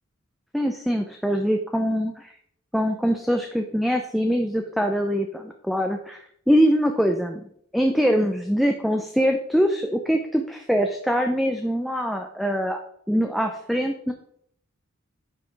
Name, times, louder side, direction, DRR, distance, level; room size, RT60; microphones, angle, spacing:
voice 1, 0.5-2.3 2.7-7.4 7.7-12.8 13.1-14.1, equal, ahead, 4 dB, 0.6 m, -23 dB
9.3 x 5.6 x 4.5 m, 0.67 s
head